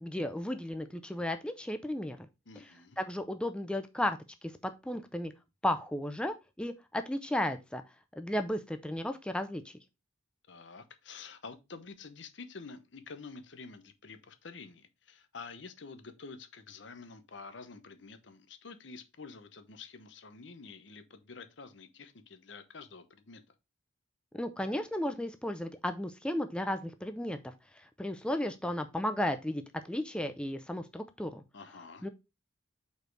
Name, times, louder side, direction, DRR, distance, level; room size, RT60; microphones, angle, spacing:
voice 1, 0.0-2.2 3.0-5.3 5.6-7.8 8.2-9.7 24.3-27.4 27.7-31.4 32.0-32.1, left 1 dB, 5° left, 0.4 m, -34 dB
voice 2, 2.5-3.0 10.5-23.5 31.5-32.1, left 4 dB, 65° left, 0.9 m, -48 dB
5.3 x 4.4 x 4.6 m
head